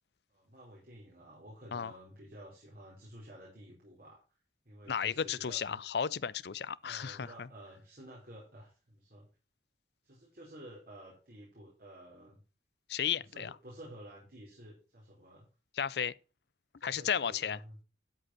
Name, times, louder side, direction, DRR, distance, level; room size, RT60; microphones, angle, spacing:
voice 1, 0.3-4.2 4.6-5.8 6.8-9.3 10.0-12.4 13.2-15.5 16.8-17.8, right 1 dB, 50° right, 4.5 m, -52 dB
voice 2, 4.9-7.5 12.9-13.5 15.8-16.1 16.8-17.6, left 7 dB, 65° left, 0.5 m, -34 dB
12.5 x 5.3 x 5.9 m
head